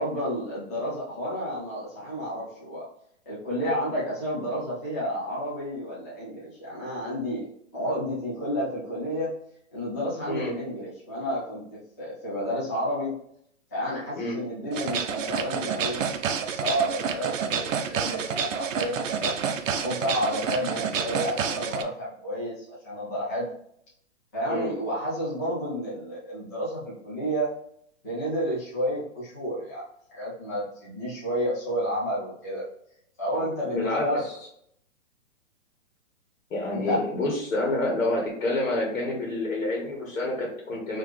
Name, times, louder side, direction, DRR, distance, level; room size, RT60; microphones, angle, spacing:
voice 1, 0.0-2.9 3.3-9.3 9.7-13.2 13.7-19.4 19.8-23.5 24.3-27.5 28.0-29.8 30.1-32.6 33.2-34.2 36.7-37.0, equal, 15° left, -9 dB, 0.5 m, -31 dB
sound 1, 14.7-21.8, right 6 dB, 70° right, 0.6 m, -29 dB
voice 2, 33.6-34.4 36.5-41.0, left 2 dB, 75° left, -1 dB, 1.5 m, -28 dB
3.8 x 3.0 x 3.1 m, 0.70 s
hypercardioid pair, 165°, 40 cm